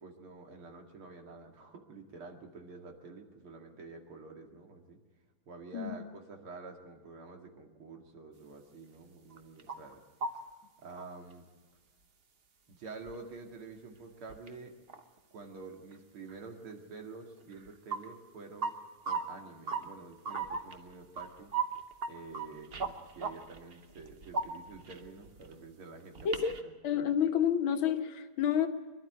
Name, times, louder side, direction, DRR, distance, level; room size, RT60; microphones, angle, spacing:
voice 1, 0.0-5.0 5.5-10.0 10.8-11.5 12.7-14.7 15.3-18.7 19.0-21.5 22.1-26.7, right 3 dB, 80° right, 2 dB, 3.0 m, -48 dB
sound 1, 9.3-9.9 10.2-10.4 11.0-11.1 11.3-11.4 13.1-13.2 14.0-14.1 14.3-14.5 14.9-15.2 15.9-16.0 16.3-16.4 17.5-18.0 18.6-18.7 19.1-19.2 19.7-19.8 20.2-22.1 22.3-25.6 26.1-26.6, right 4 dB, 40° right, 0.8 m, -36 dB
voice 2, 26.8-28.7, left 8 dB, 70° left, 6 dB, 2.0 m, -29 dB
25.0 x 12.0 x 9.2 m, 1.3 s
omnidirectional pair, 2.3 m